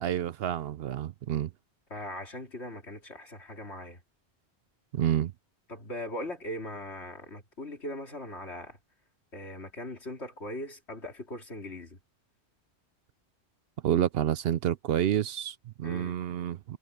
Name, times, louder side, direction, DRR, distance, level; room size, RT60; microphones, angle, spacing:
voice 1, 0.0-1.5 4.9-5.3 13.8-16.8, right 10 dB, 65° right, 0.7 m, -29 dB
voice 2, 1.9-4.0 5.7-8.8 9.3-12.0 15.8-16.2, left 1 dB, 70° left, 3.7 m, -40 dB
omnidirectional pair, 1.2 m